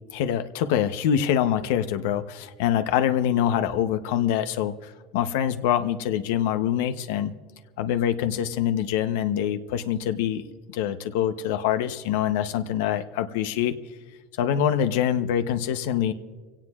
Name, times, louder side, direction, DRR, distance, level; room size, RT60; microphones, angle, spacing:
voice 1, 0.1-7.3 7.8-10.4 10.7-13.8 14.4-16.1, left 10 dB, 80° left, 9 dB, 0.7 m, -25 dB
25.0 x 17.5 x 2.4 m, 1.4 s
cardioid pair, 150°, 0 cm